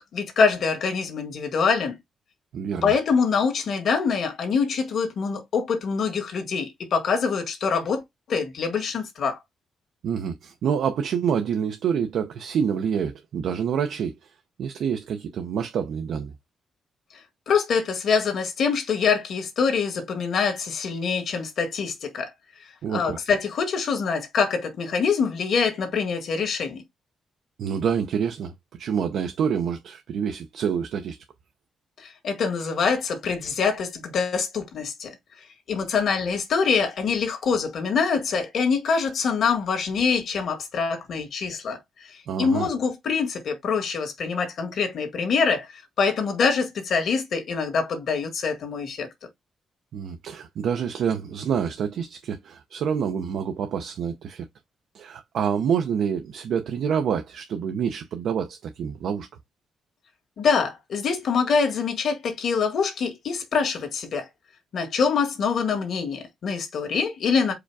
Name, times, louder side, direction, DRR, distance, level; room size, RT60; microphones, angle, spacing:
voice 1, 0.0-1.9 2.8-8.0 8.3-9.4 17.5-22.3 22.9-26.8 32.0-35.2 35.7-49.1 60.4-64.3 64.7-67.5, left 5 dB, 65° left, 1.8 m, -25 dB
voice 2, 2.5-2.9 10.0-14.3 14.6-16.3 22.8-23.2 27.6-28.5 28.8-31.2 42.3-42.7 49.9-54.5 54.9-59.3, right 7 dB, 75° right, 0.6 m, -27 dB
4.9 x 2.4 x 4.7 m
cardioid pair, 95°, 0 cm